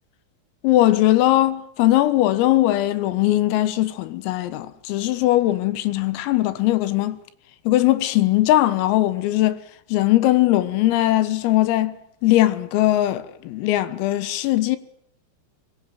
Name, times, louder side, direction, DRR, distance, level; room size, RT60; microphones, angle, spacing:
voice 1, 0.6-7.2 7.7-9.6 9.9-12.0 12.2-14.8, left 15 dB, 90° left, 4.0 m, -20 dB
22.5 x 21.5 x 9.2 m
omnidirectional pair, 5.9 m